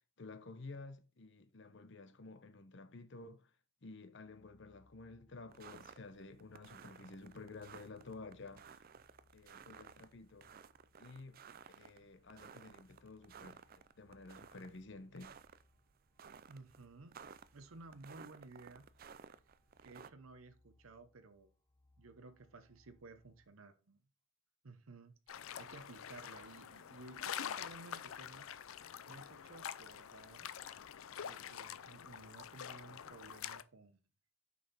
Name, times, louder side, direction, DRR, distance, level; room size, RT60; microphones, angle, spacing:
voice 1, 0.2-3.5 3.8-8.8 9.3-10.5 11.0-11.4 11.8-13.6 14.0-15.3, left 3 dB, 60° left, 0.8 m, -52 dB
sound 1, 4.2-23.5, left 2 dB, 20° left, 1.1 m, -73 dB
sound 2, 5.5-20.1, right 6 dB, 45° right, 0.4 m, -57 dB
voice 2, 16.5-17.2 17.5-18.9 19.8-21.5 22.0-24.0 24.6-28.5 29.1-30.5 31.2-34.0, right 3 dB, 80° right, 0.8 m, -56 dB
sound 3, 25.3-33.6, left 9 dB, 80° left, 0.5 m, -46 dB
6.3 x 5.4 x 4.2 m
head